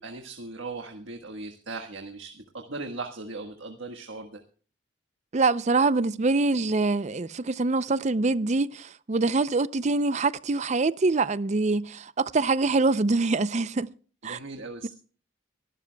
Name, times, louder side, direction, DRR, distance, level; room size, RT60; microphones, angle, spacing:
voice 1, 0.0-4.4 14.2-14.9, right 3 dB, 85° right, 1.5 m, -38 dB
voice 2, 5.3-13.9 14.2-14.4, right 3 dB, 35° right, 0.5 m, -24 dB
24.0 x 12.5 x 2.2 m
head